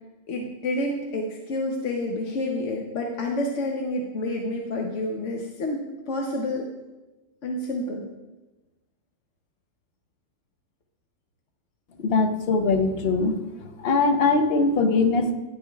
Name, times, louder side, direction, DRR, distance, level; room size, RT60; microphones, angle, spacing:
voice 1, 0.3-6.6 7.4-8.0, left 1 dB, 85° left, 1 dB, 1.2 m, -29 dB
voice 2, 12.0-13.4 13.8-15.3, left 3 dB, 60° left, 8 dB, 0.9 m, -21 dB
10.5 x 10.5 x 2.3 m, 1.1 s
omnidirectional pair, 1.2 m